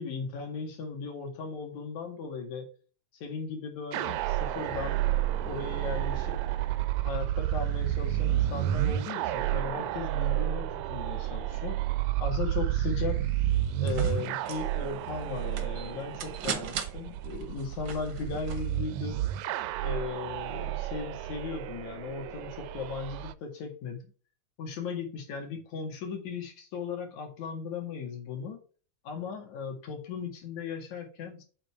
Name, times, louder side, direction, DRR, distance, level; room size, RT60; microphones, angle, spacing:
voice 1, 0.0-2.7 3.2-6.4 7.0-11.8 12.2-13.3 13.8-19.2 19.8-24.0 24.6-28.6 29.1-31.4, left 5 dB, 75° left, 3 dB, 3.3 m, -37 dB
sound 1, 3.9-23.3, right 13 dB, 85° right, 1.9 m, -31 dB
sound 2, 13.5-18.8, right 7 dB, 55° right, 1.4 m, -40 dB
7.8 x 4.6 x 4.7 m, 0.38 s
omnidirectional pair, 3.3 m